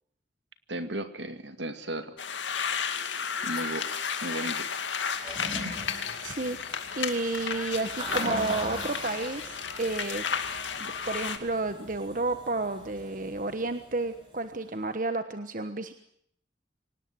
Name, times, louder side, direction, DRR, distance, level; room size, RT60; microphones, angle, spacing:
voice 1, 0.7-2.1 3.4-3.8 4.2-4.7, right 1 dB, 70° right, 9 dB, 2.3 m, -35 dB
sound 1, 2.2-11.4, left 6 dB, 80° left, 2.3 m, -33 dB
Toilet flush, 5.1-14.4, right 1 dB, 25° right, 7.0 m, -41 dB
voice 2, 6.2-6.6 7.0-10.2 10.8-15.9, right 2 dB, 45° right, 9 dB, 1.3 m, -31 dB
25.0 x 19.0 x 8.0 m, 0.68 s
head